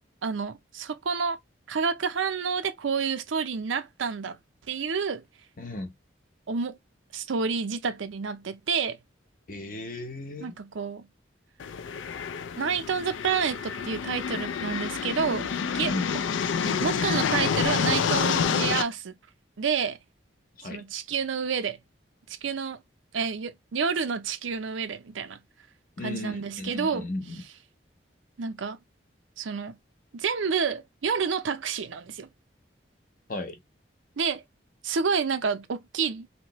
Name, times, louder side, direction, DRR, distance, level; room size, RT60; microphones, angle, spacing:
voice 1, 0.2-1.4 1.7-4.4 4.7-5.2 6.5-6.8 7.1-9.0 10.4-11.1 12.6-16.0 16.7-19.1 19.6-20.0 20.6-21.8 22.4-22.8 23.1-25.4 26.0-27.1 28.4-28.8 29.4-29.8 30.1-32.3 34.2-34.4 34.8-36.3, right 6 dB, 90° right, 0.6 m, -29 dB
voice 2, 5.6-5.9 9.5-10.5 15.8-16.1 20.6-20.8 26.0-27.4 33.3-33.6, left 2 dB, 45° left, 0.7 m, -35 dB
sound 1, 11.6-18.8, left 6 dB, 85° left, 0.4 m, -28 dB
3.0 x 2.8 x 3.0 m
head